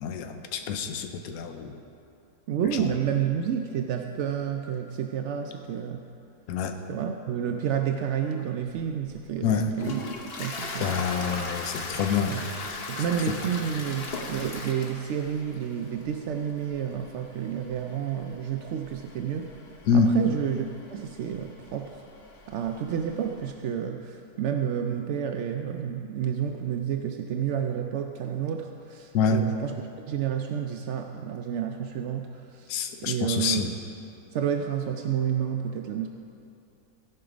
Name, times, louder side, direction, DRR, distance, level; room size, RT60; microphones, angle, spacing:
voice 1, 0.0-1.8 2.8-2.9 6.5-6.8 9.4-9.7 10.8-12.8 19.9-20.1 29.1-29.4 32.7-33.7, left 6 dB, 65° left, 6 dB, 1.1 m, -27 dB
voice 2, 2.5-6.0 6.9-10.0 10.4-11.0 12.3-12.5 12.9-19.5 19.9-22.0 22.5-32.7 33.0-33.7 34.3-36.1, right 8 dB, 75° right, 4 dB, 0.6 m, -30 dB
Toilet flush, 9.1-23.5, left 3 dB, 45° left, 1.0 m, -39 dB
16.5 x 5.7 x 5.0 m, 2.7 s
omnidirectional pair, 1.7 m